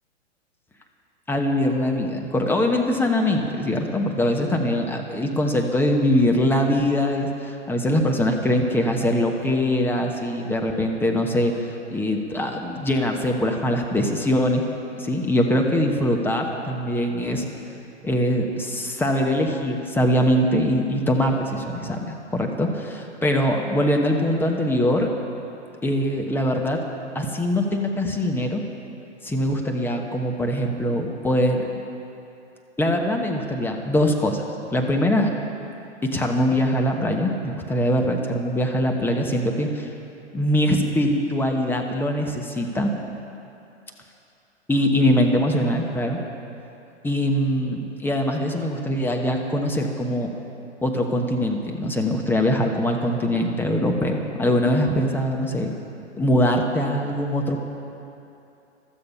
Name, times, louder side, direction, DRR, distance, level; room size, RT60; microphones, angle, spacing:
voice 1, 1.3-11.5 11.9-14.6 15.0-17.5 18.0-25.1 25.8-26.8 27.1-28.6 29.2-31.7 32.8-34.4 34.7-35.3 36.0-39.9 40.3-42.9 44.7-46.2 47.0-50.3 50.8-55.7 56.2-57.6, left 1 dB, 5° left, 2 dB, 1.0 m, -22 dB
15.5 x 12.5 x 5.6 m, 2.8 s
hypercardioid pair, 130°, 35 cm